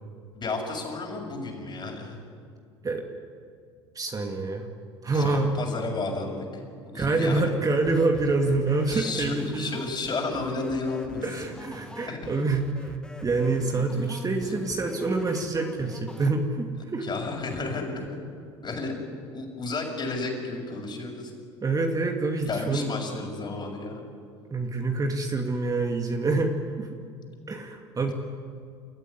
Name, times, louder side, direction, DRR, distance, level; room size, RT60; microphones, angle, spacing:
voice 1, 0.3-2.2 5.1-6.6 6.9-7.5 8.9-11.2 12.0-12.3 17.0-18.1 18.6-19.0 19.3-21.3 22.5-24.0, left 3 dB, 30° left, 2 dB, 6.6 m, -32 dB
voice 2, 3.9-4.7 5.0-5.5 6.9-9.8 11.2-13.0 13.2-17.1 21.6-22.9 24.5-26.9 27.5-28.1, right 3 dB, 25° right, 3 dB, 2.5 m, -26 dB
sound 1, 7.9-16.3, left 1 dB, 5° left, 1.9 m, -43 dB
29.0 x 14.5 x 9.9 m, 2.3 s
figure-of-eight pair, 65°, 14 cm